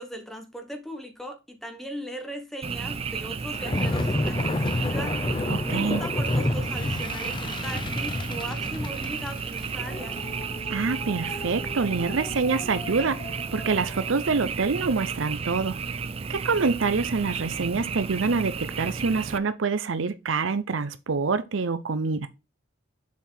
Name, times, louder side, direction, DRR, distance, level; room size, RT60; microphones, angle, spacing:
voice 1, 0.0-5.2 5.7-10.1, equal, ahead, 1.2 m, -38 dB
Frog, 2.6-19.4, right 5 dB, 30° right, 0.3 m, -33 dB
sound 1, 3.5-14.1, left 2 dB, 25° left, 0.6 m, -31 dB
voice 2, 5.5-6.0 10.7-15.8 16.3-22.3, right 4 dB, 75° right, 0.6 m, -26 dB
7.0 x 4.7 x 4.0 m
head